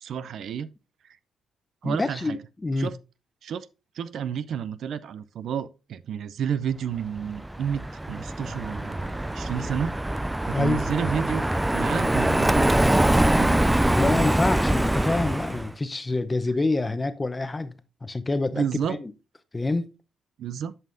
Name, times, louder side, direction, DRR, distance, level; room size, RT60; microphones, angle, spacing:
voice 1, 0.0-0.7 1.0-1.2 1.8-2.4 2.8-3.0 3.4-3.7 3.9-9.9 10.5-11.4 11.7-13.6 18.5-19.0 20.4-20.7, right 8 dB, 65° right, 0.5 m, -31 dB
voice 2, 1.8-2.9 10.5-10.8 13.9-17.7 18.0-19.1 19.5-19.9, left 2 dB, 20° left, 0.8 m, -27 dB
Car passing by, 7.2-15.7, right 1 dB, 10° right, 0.3 m, -23 dB
11.0 x 5.5 x 2.6 m
cardioid pair, 90°, 0 cm